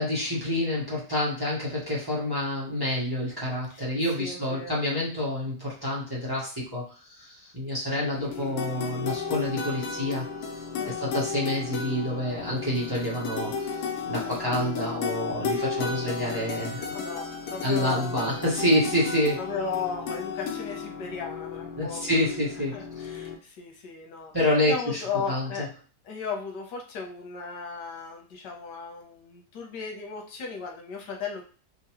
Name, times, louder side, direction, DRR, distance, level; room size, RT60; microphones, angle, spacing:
voice 1, 0.0-10.3 10.9-16.9 17.6-19.4 21.8-22.8 24.3-25.0 25.3-25.7, left 1 dB, 15° right, -6 dB, 1.1 m, -28 dB
voice 2, 4.2-4.8 10.8-11.0 16.9-18.3 19.4-22.1 22.7-24.3 24.6-25.7 26.0-31.4, left 5 dB, 85° left, 1 dB, 1.5 m, -36 dB
sound 1, 8.1-23.4, left 5 dB, 70° left, 1.1 m, -34 dB
3.7 x 2.6 x 3.0 m, 0.38 s
omnidirectional pair, 1.8 m